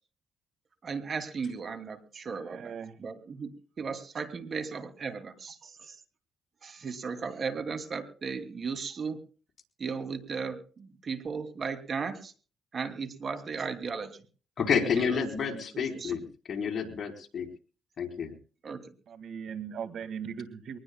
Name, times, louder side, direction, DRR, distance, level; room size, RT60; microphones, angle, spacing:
voice 1, 0.8-6.0 6.6-9.2 9.8-12.3 12.7-14.2 14.9-16.2 18.6-18.9, right 5 dB, 45° right, 9 dB, 2.9 m, -36 dB
voice 2, 2.5-2.9 19.1-20.8, right 7 dB, 65° right, 11 dB, 2.1 m, -38 dB
voice 3, 14.6-16.2 16.5-17.5 18.0-18.3, left 6 dB, 50° left, 3 dB, 4.3 m, -29 dB
24.0 x 20.0 x 2.3 m, 0.38 s
cardioid pair, 90°, 0 cm